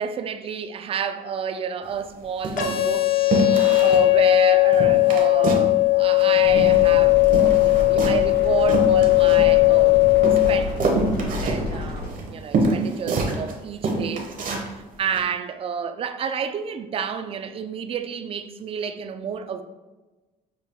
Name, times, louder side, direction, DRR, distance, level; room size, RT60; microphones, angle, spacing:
voice 1, 0.0-3.1 3.8-10.0 10.3-10.8 11.4-19.6, right 6 dB, 35° right, 0.3 m, -30 dB
sound 1, 1.8-2.0 2.4-2.9 3.3-4.1 4.3-4.4 4.7-5.7 6.0-7.0 7.2-9.8 10.2-13.5 13.8-14.7 15.1-15.2, right 3 dB, 55° right, 0.8 m, -26 dB
sound 2, 2.6-10.6, left 23 dB, 55° left, 0.6 m, -18 dB
sound 3, 6.4-12.1, left 2 dB, 85° left, 1.4 m, -31 dB
5.8 x 2.2 x 3.5 m
cardioid pair, 110°, 17 cm